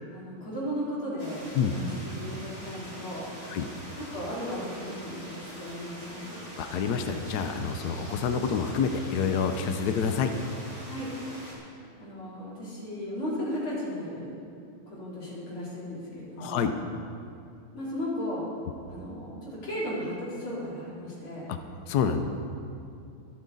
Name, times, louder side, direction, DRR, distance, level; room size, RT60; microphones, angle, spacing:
voice 1, 0.1-3.3 4.0-6.4 10.8-11.1 11.6-14.3 14.9-16.7 17.7-18.5 18.9-21.5, equal, 85° left, -7 dB, 4.6 m, -35 dB
sound 1, 1.2-11.5, equal, 20° right, 3.7 m, -43 dB
voice 2, 6.6-10.3 16.4-16.7 21.5-21.6 21.9-22.2, left 6 dB, 65° left, 7 dB, 1.1 m, -27 dB
24.5 x 8.7 x 4.1 m, 2.6 s
omnidirectional pair, 2.2 m